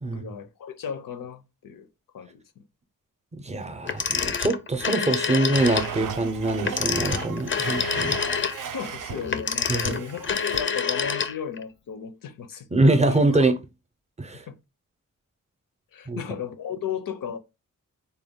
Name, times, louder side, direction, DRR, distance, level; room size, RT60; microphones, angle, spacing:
voice 1, 0.0-1.9 2.1-2.6 8.7-12.7 13.1-13.2 14.5-14.6 15.9-17.4, left 7 dB, 90° left, 0.6 m, -35 dB
voice 2, 3.3-8.2 9.7-10.0 12.7-13.6 14.2-14.4 16.1-16.2, right 2 dB, 20° right, 0.5 m, -24 dB
Telephone, 3.9-5.9 6.6-11.6, left 6 dB, 40° left, 0.4 m, -27 dB
Domestic sounds home sounds, 5.5-9.3 9.7-10.6, right 7 dB, 75° right, 0.5 m, -36 dB
4.1 x 2.2 x 3.5 m
wide cardioid pair, 135°, 32 cm